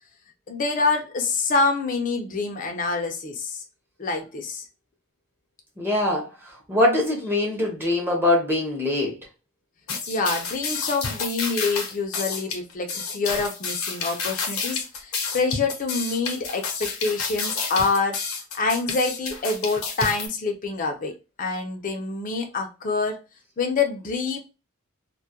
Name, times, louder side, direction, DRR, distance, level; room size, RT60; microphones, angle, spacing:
voice 1, 0.5-3.6 4.0-4.6 10.1-18.2 18.5-23.2 23.6-24.4, left 4 dB, 40° left, 0.4 m, -26 dB
voice 2, 5.8-6.3 6.7-9.2, left 1 dB, 10° right, 0.7 m, -22 dB
sound 1, 9.9-20.3, left 5 dB, 80° left, 0.7 m, -30 dB
2.2 x 2.1 x 2.7 m
head